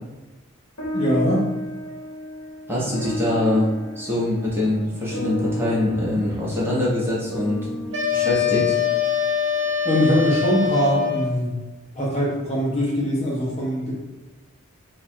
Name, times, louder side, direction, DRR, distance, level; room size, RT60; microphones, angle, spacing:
sound 1, 0.8-9.5, left 1 dB, 65° left, 1.0 m, -33 dB
voice 1, 0.9-1.5 9.8-11.5 11.9-13.9, equal, 30° left, -4 dB, 0.7 m, -22 dB
voice 2, 2.7-3.7 4.0-7.7 8.1-8.7, left 1 dB, 10° right, -7 dB, 0.9 m, -23 dB
sound 2, 7.9-11.4, left 9 dB, 60° right, 0.8 m, -23 dB
3.1 x 2.4 x 4.3 m, 1.1 s
head